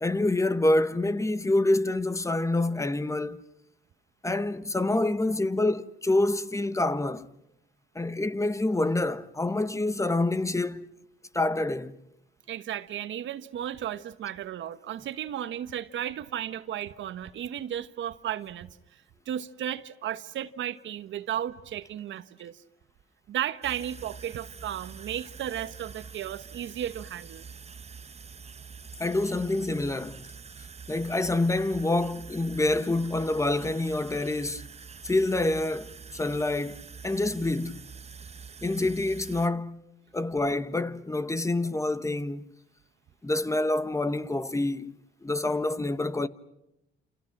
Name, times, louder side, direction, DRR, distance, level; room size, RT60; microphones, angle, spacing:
voice 1, 0.0-3.4 4.2-7.3 7.9-10.9 11.3-12.0 29.0-30.2 30.9-34.7 35.0-37.9 38.6-39.9 40.1-42.4 43.2-44.9 45.2-46.3, left 2 dB, 15° left, 1.2 m, -27 dB
voice 2, 12.5-22.6 23.3-27.4, right 11 dB, 70° right, 1.3 m, -34 dB
sound 1, 23.6-39.5, right 6 dB, 30° right, 1.0 m, -46 dB
29.0 x 28.5 x 6.0 m
cardioid pair, 90°, 20 cm